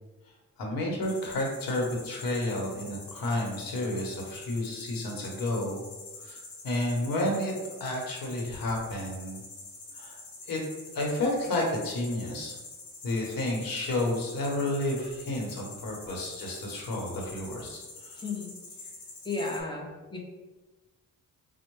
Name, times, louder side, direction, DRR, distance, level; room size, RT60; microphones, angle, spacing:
voice 1, 0.6-5.8 6.2-6.4 6.6-7.5 7.8-9.4 9.9-10.2 10.5-10.6 10.9-12.5 13.0-18.2, left 1 dB, 80° left, -1 dB, 1.0 m, -31 dB
sound 1, 1.0-19.6, left 3 dB, 60° left, 0.9 m, -46 dB
voice 2, 18.2-18.5 19.2-20.2, left 3 dB, 15° left, -1 dB, 0.7 m, -34 dB
4.3 x 2.1 x 3.1 m, 1.2 s
cardioid pair, 95°, 34 cm